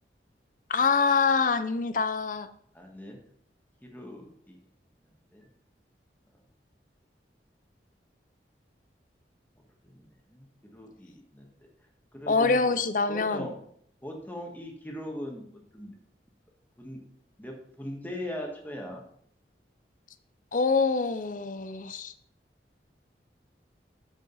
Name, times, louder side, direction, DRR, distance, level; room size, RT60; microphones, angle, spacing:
voice 1, 0.7-2.5 12.3-13.5 20.5-22.1, left 4 dB, 50° left, 12 dB, 0.6 m, -25 dB
voice 2, 2.7-3.2 3.8-4.6 5.3-5.5 9.6-11.5 12.1-12.7 13.1-13.5 14.0-15.9 16.8-17.0 17.4-19.0, equal, 10° left, 1 dB, 1.5 m, -40 dB
13.0 x 5.1 x 4.0 m, 0.67 s
head